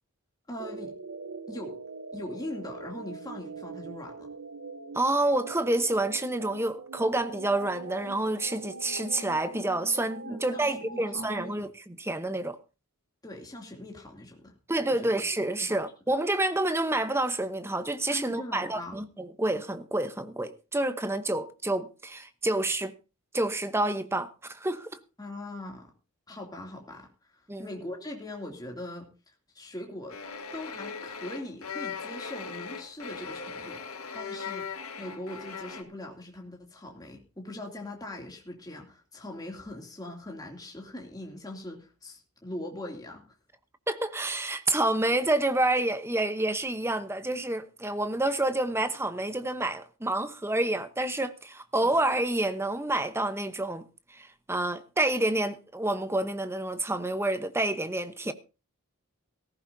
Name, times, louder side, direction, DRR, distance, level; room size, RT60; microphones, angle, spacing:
voice 1, 0.5-0.9 1.5-1.8 2.1-4.3 10.2-11.7 13.2-14.5 15.6-15.8 18.1-19.0 25.2-25.9 26.3-29.1 29.5-30.2 30.5-43.2 51.8-51.9, left 1 dB, 15° left, 2.7 m, -41 dB
sound 1, 0.6-11.6, right 3 dB, 60° right, 0.9 m, -42 dB
voice 2, 4.9-12.6 14.7-22.9 23.3-24.9 27.5-27.7 43.9-53.8 54.1-58.3, right 2 dB, 10° right, 0.9 m, -28 dB
sound 2, 30.1-35.8, left 5 dB, 75° left, 1.7 m, -39 dB
17.5 x 15.0 x 2.7 m
head